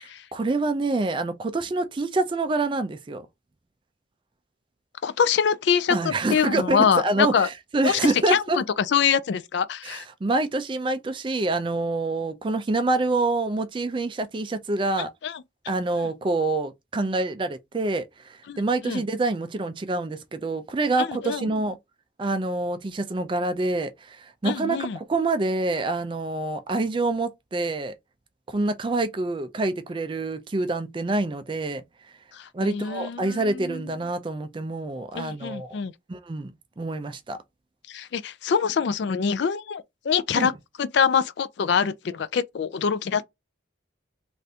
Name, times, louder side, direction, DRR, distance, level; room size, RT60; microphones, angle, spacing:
voice 1, 0.0-3.3 5.9-8.6 9.8-15.1 15.7-21.8 22.2-28.0 28.5-31.8 32.5-35.8 36.1-37.4 40.3-40.5, right 2 dB, 25° right, 0.3 m, -26 dB
voice 2, 5.0-7.5 7.8-10.0 15.0-15.4 18.5-19.0 21.0-21.5 24.4-25.0 32.3-33.8 35.1-35.9 37.9-40.5 40.8-43.2, left 7 dB, 60° left, 0.3 m, -25 dB
3.3 x 2.5 x 2.7 m
head